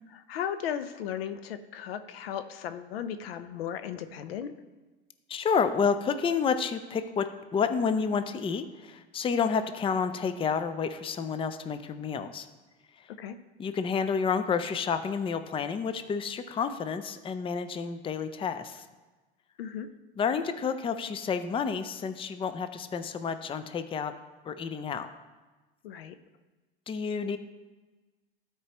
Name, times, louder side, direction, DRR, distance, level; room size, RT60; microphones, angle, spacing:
voice 1, 0.3-4.5 13.2-13.4 19.6-19.9 25.8-26.2, left 9 dB, 80° left, 11 dB, 0.6 m, -36 dB
voice 2, 5.3-12.5 13.0-13.1 13.6-18.8 20.2-24.1 24.4-25.1 26.9-27.4, left 6 dB, 20° left, 10 dB, 0.5 m, -30 dB
13.0 x 4.6 x 3.0 m, 1.2 s
hypercardioid pair, 90°, 29 cm